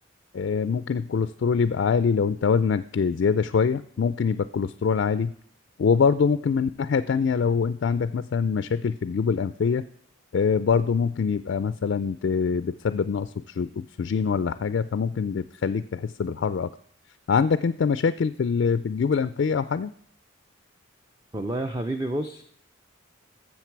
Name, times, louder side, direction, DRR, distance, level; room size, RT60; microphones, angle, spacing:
voice 1, 0.3-5.3 5.8-9.8 10.3-16.7 17.3-19.9, left 5 dB, 55° left, 13 dB, 0.3 m, -24 dB
voice 2, 21.3-22.4, right 1 dB, 20° right, 7 dB, 0.5 m, -29 dB
13.0 x 7.3 x 4.6 m, 0.66 s
head